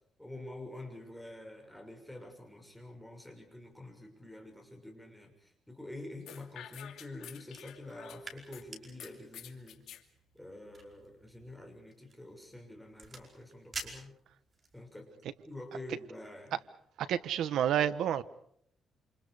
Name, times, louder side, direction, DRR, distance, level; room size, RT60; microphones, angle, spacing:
voice 1, 0.2-9.8 10.3-14.2 14.7-15.1 15.4-16.6, left 1 dB, 5° left, 6.6 m, -47 dB
sound 1, 6.3-8.6 9.0-10.0, left 11 dB, 90° left, 2.5 m, -49 dB
sound 2, 7.5-14.8, right 3 dB, 30° right, 5.1 m, -50 dB
voice 2, 17.0-18.2, right 10 dB, 80° right, 1.3 m, -29 dB
28.5 x 27.5 x 5.1 m
cardioid pair, 130°, 0 cm